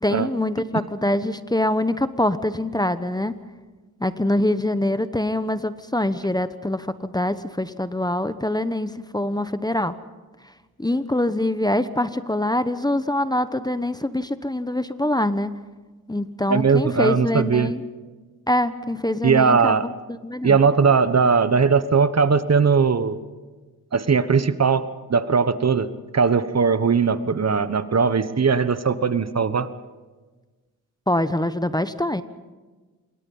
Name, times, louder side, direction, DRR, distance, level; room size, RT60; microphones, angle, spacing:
voice 1, 0.0-3.4 4.0-10.0 10.8-15.5 16.1-17.8 18.5-19.9 20.2-20.6 31.1-32.2, left 1 dB, 10° left, 12 dB, 1.0 m, -24 dB
voice 2, 16.5-17.7 19.2-19.8 20.4-23.2 23.9-29.7, right 5 dB, 40° right, 13 dB, 1.2 m, -19 dB
27.0 x 23.0 x 5.6 m, 1.3 s
cardioid pair, 70°, 38 cm